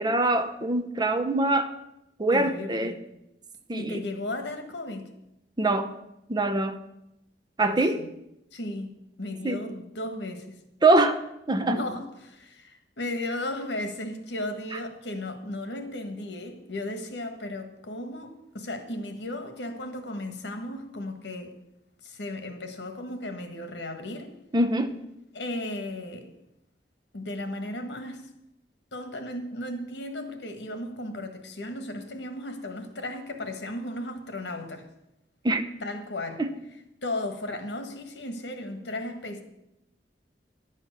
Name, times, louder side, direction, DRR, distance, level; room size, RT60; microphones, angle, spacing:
voice 1, 0.0-1.7 2.2-2.9 3.7-4.0 5.6-5.9 6.3-6.8 7.6-8.0 9.4-9.6 10.8-11.2 11.5-11.8 24.5-25.0 35.4-35.7 36.4-36.5, right 2 dB, 25° right, 0.7 m, -23 dB
voice 2, 2.3-3.0 3.7-5.1 7.6-8.1 8.5-8.9 9.2-10.6 11.6-21.5 22.0-24.3 25.3-26.3 27.1-28.3 28.9-34.9 35.8-36.4 37.0-39.4, left 1 dB, 85° left, 1.4 m, -35 dB
11.0 x 7.4 x 6.6 m
head